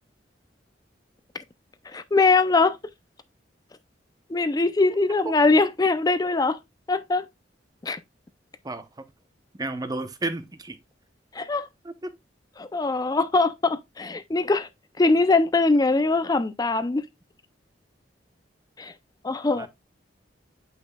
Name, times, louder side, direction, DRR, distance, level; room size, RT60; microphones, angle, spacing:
voice 1, 1.8-2.8 4.3-6.6 6.9-7.3 7.8-8.0 11.3-11.7 12.6-14.7 15.0-17.1 18.8-18.9 19.2-19.7, left 3 dB, 20° left, 0.4 m, -22 dB
voice 2, 8.6-9.1 9.6-10.8 11.8-12.2 19.6-19.7, right 2 dB, 20° right, 0.7 m, -32 dB
8.2 x 5.5 x 2.2 m
head